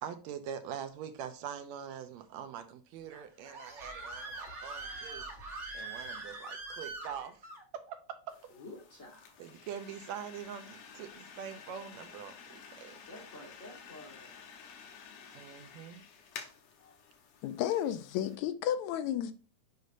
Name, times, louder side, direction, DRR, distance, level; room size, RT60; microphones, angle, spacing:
voice 1, 0.0-5.2 5.7-7.4 7.7-8.5 9.4-13.0 15.3-16.0, right 8 dB, 80° right, 1.8 m, -44 dB
Screaming, 3.1-7.6, right 2 dB, 45° right, 0.9 m, -43 dB
sound 1, 8.3-18.4, left 6 dB, 65° left, 1.8 m, -52 dB
voice 2, 8.5-9.4 13.1-14.3, left 2 dB, 40° left, 1.2 m, -50 dB
voice 3, 17.4-19.3, left 11 dB, 80° left, 1.9 m, -32 dB
8.2 x 5.2 x 2.6 m
omnidirectional pair, 3.3 m